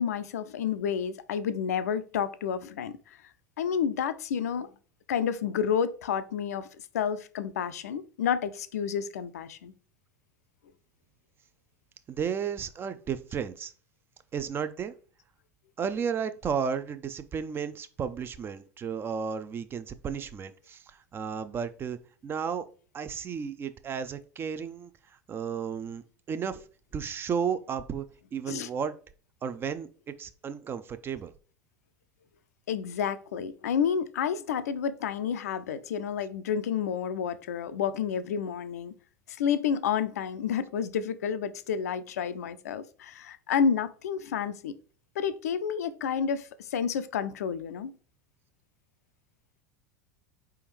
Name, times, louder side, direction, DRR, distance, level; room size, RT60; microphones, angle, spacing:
voice 1, 0.0-3.2 3.6-4.7 5.1-6.7 6.9-9.7 28.5-28.7 32.7-38.9 39.3-44.7 45.2-47.9, left 7 dB, 65° left, 0.4 m, -30 dB
voice 2, 12.1-13.7 14.3-14.9 15.8-22.0 22.2-22.7 22.9-24.9 25.3-26.7 26.9-28.1 28.3-28.9 29.4-31.3, right 7 dB, 25° right, 0.4 m, -33 dB
4.5 x 3.4 x 3.1 m
figure-of-eight pair, 80°, 9 cm